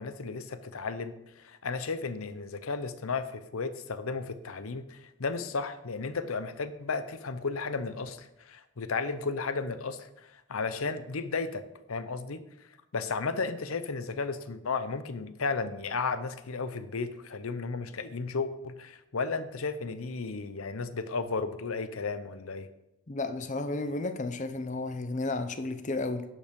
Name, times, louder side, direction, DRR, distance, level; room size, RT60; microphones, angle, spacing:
voice 1, 0.0-12.7 12.9-22.7, left 4 dB, 85° left, 12 dB, 0.8 m, -34 dB
voice 2, 23.1-26.3, left 2 dB, 35° left, 9 dB, 0.7 m, -32 dB
11.0 x 5.6 x 5.2 m, 0.89 s
head